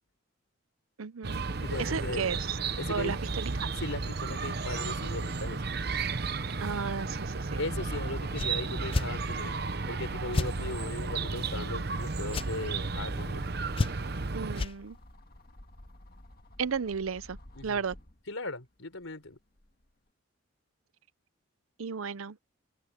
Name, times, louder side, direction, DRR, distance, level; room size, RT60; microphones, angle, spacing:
voice 1, 1.0-1.4 1.8-2.6 2.9-3.7 6.6-7.6 14.3-15.0 16.6-17.4 17.6-18.0 21.8-22.4, right 6 dB, 85° right, 0.7 m, -34 dB
Chirp tweet, 1.2-14.6, right 4 dB, 50° right, 0.8 m, -33 dB
voice 2, 1.6-2.3 2.8-3.2 3.7-5.6 7.6-9.5 9.9-13.4 17.6-17.8 18.3-19.4, left 2 dB, 80° left, 4.0 m, -38 dB
sound 1, 3.9-11.2 11.7-18.3 18.8-19.9, left 1 dB, 45° left, 1.8 m, -52 dB
sound 2, 8.3-8.5 8.9-9.1 10.3-10.5 12.3-12.5 13.7-14.2 14.5-14.7, left 3 dB, 25° left, 0.3 m, -29 dB
head